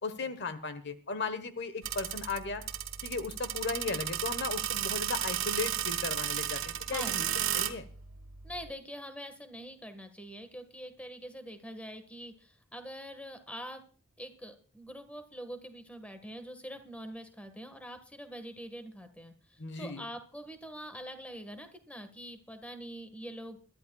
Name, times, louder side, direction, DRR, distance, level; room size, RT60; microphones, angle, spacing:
voice 1, 0.0-2.6 3.0-7.3 7.5-7.9 19.6-20.0, left 4 dB, 50° left, 11 dB, 1.1 m, -36 dB
sound 1, 1.8-8.7, right 11 dB, 65° right, 1.4 m, -34 dB
voice 2, 8.4-13.8 14.2-23.6, equal, 5° left, 8 dB, 1.5 m, -44 dB
22.0 x 13.0 x 2.3 m, 0.42 s
head